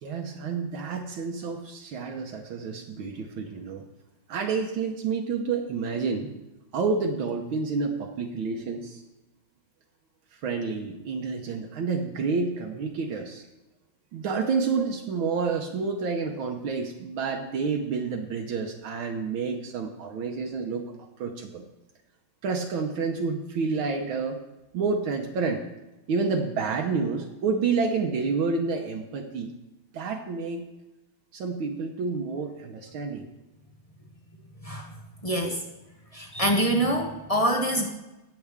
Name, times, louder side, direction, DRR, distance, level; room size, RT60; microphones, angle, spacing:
voice 1, 0.0-3.9 4.3-6.3 6.7-9.0 10.4-13.4 14.1-20.9 21.2-21.6 22.4-24.4 24.7-25.6 26.1-29.5 29.9-30.7 31.3-33.3, right 4 dB, 75° right, 2 dB, 1.7 m, -29 dB
voice 2, 34.6-34.9 35.2-35.6 36.1-37.9, right 1 dB, 25° left, 2 dB, 0.8 m, -25 dB
18.0 x 7.0 x 3.6 m, 0.98 s
omnidirectional pair, 2.2 m